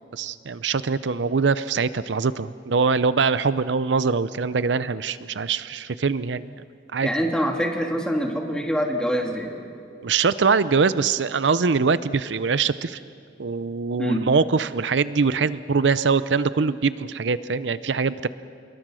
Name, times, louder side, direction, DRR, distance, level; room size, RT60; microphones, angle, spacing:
voice 1, 0.1-6.5 6.9-7.1 10.0-13.0 13.4-18.3, right 5 dB, 80° right, 15 dB, 0.6 m, -23 dB
voice 2, 7.0-9.5 14.0-14.2, equal, 5° left, 1 dB, 2.5 m, -25 dB
28.0 x 22.0 x 6.3 m, 2.3 s
head